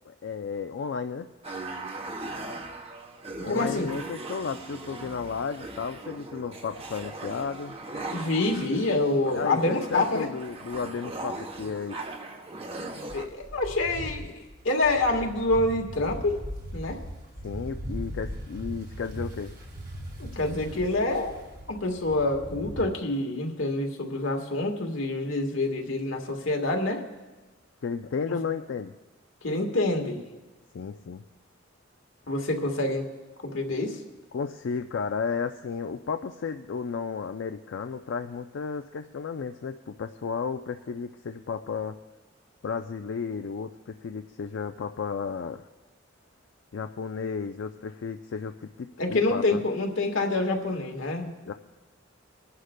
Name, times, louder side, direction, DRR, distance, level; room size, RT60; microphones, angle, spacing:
voice 1, 0.0-1.3 3.4-7.8 9.3-12.0 17.4-19.5 27.8-28.9 30.7-31.2 34.3-42.0 42.6-45.7 46.7-49.6 51.5-51.6, left 5 dB, 65° left, 6 dB, 0.4 m, -33 dB
sound 1, 1.4-13.2, right 2 dB, 30° right, 0.9 m, -39 dB
voice 2, 3.5-3.9 8.1-10.3 13.1-14.3 14.6-16.4 16.7-17.0 20.2-21.3 21.7-27.0 29.4-30.2 32.3-33.1 33.4-34.0 49.0-51.3, left 2 dB, 85° left, 2 dB, 1.6 m, -27 dB
sound 2, 13.1-22.8, equal, 50° right, 2.5 m, -39 dB
26.5 x 11.5 x 2.2 m, 1.2 s
head